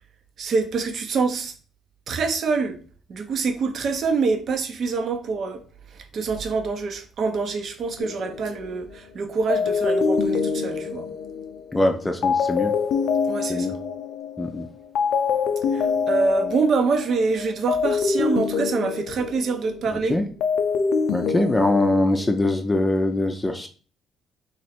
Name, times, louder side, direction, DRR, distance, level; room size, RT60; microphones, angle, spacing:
voice 1, 0.4-1.5 2.1-2.8 3.1-5.6 5.9-11.1 13.3-13.7 15.7-20.2, right 4 dB, 60° right, 0.8 m, -25 dB
sound 1, 8.0-9.0 9.5-14.7 14.9-19.9 20.2-22.4, left 5 dB, 75° left, 0.4 m, -25 dB
voice 2, 11.7-12.7 13.5-13.7 14.4-14.7 20.1-20.2 21.1-23.7, left 2 dB, 20° left, 0.5 m, -22 dB
2.9 x 2.6 x 4.3 m
supercardioid pair, 70°, 0 cm